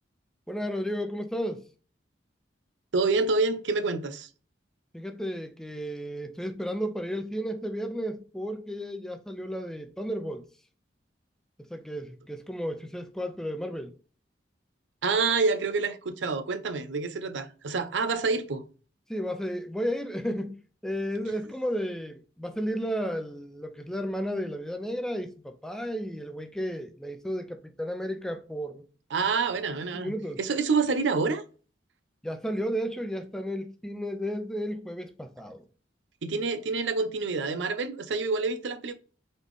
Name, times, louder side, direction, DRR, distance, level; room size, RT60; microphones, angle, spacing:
voice 1, 0.5-1.6 4.9-10.4 11.7-13.9 19.1-20.6 20.8-28.8 29.9-30.4 32.2-35.7, equal, 5° left, 0.5 m, -33 dB
voice 2, 2.9-4.3 15.0-18.6 29.1-31.4 36.2-38.9, right 4 dB, 85° right, 0.6 m, -27 dB
4.0 x 3.2 x 3.5 m
head